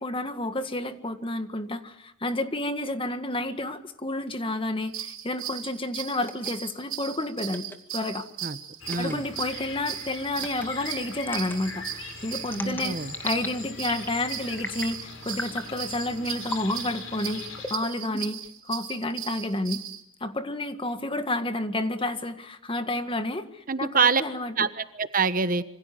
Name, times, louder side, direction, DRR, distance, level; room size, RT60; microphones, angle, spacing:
voice 1, 0.0-7.7 7.9-8.3 9.0-13.0 13.2-19.8 20.2-24.5, left 1 dB, 25° left, 8 dB, 1.8 m, -30 dB
sound 1, 4.8-20.0, right 11 dB, 80° right, 4.5 m, -38 dB
sound 2, 6.2-6.5 7.5-7.8 8.8-9.1 10.3-10.7 11.2-11.6 12.4-13.5 13.8-14.2 14.6-15.0 15.3-15.7 16.4-16.8 17.6-18.5, left 1 dB, 10° left, 2.2 m, -36 dB
sound 3, 8.8-17.7, left 4 dB, 90° left, 5.3 m, -41 dB
voice 2, 8.9-9.2 12.6-13.1 23.7-24.2 24.6-25.6, right 5 dB, 45° right, 11 dB, 1.2 m, -25 dB
27.0 x 26.0 x 7.7 m, 0.78 s
head